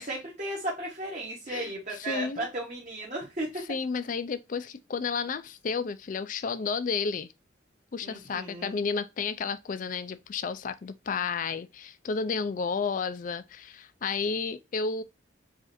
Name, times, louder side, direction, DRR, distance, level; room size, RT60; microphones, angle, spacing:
voice 1, 0.0-3.5 8.0-8.8, right 1 dB, 40° right, 1.0 m, -35 dB
voice 2, 1.5-2.5 3.7-7.3 7.9-15.0, left 5 dB, 45° left, 0.3 m, -32 dB
4.9 x 2.5 x 2.5 m
head